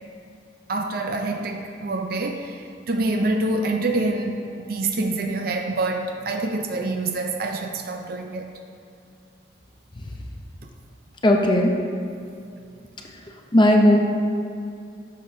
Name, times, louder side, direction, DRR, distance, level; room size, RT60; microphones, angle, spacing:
voice 1, 0.7-8.5, right 2 dB, 50° right, 4 dB, 0.5 m, -26 dB
voice 2, 11.2-11.8 13.5-14.0, left 1 dB, 25° left, 1 dB, 0.6 m, -16 dB
11.0 x 6.8 x 2.7 m, 2.5 s
head